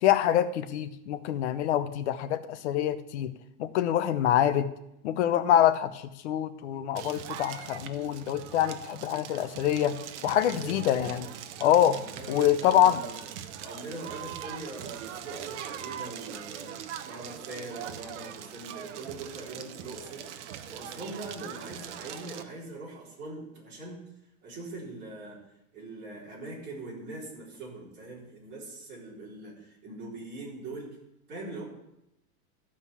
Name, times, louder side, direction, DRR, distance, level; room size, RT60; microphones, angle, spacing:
voice 1, 0.0-3.3 3.6-4.7 5.0-10.0 10.2-11.3 11.6-12.0 12.3-13.0, left 11 dB, 50° left, 12 dB, 0.8 m, -25 dB
Crackle, 6.9-22.4, right 9 dB, 50° right, 0.9 m, -41 dB
voice 2, 10.1-11.0 11.8-13.2 13.6-16.8 17.1-20.3 20.7-24.0 24.4-25.4 25.7-31.0 31.3-31.6, right 2 dB, 25° right, -6 dB, 4.0 m, -42 dB
14.0 x 5.3 x 6.9 m, 0.83 s
supercardioid pair, 170°, 45 cm